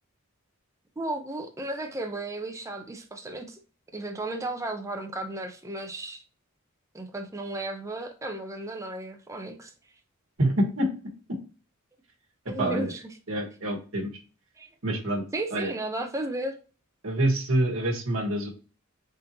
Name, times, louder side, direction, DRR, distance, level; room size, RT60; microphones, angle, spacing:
voice 1, 1.0-3.6 3.9-6.2 6.9-9.7 12.5-13.1 14.6-14.7 15.3-16.5, right 2 dB, 15° right, 0.5 m, -34 dB
voice 2, 10.4-10.9 12.6-12.9 13.3-14.1 14.8-15.2 15.5-15.7 17.0-18.5, right 1 dB, 70° right, 1.2 m, -26 dB
4.0 x 3.7 x 2.7 m
head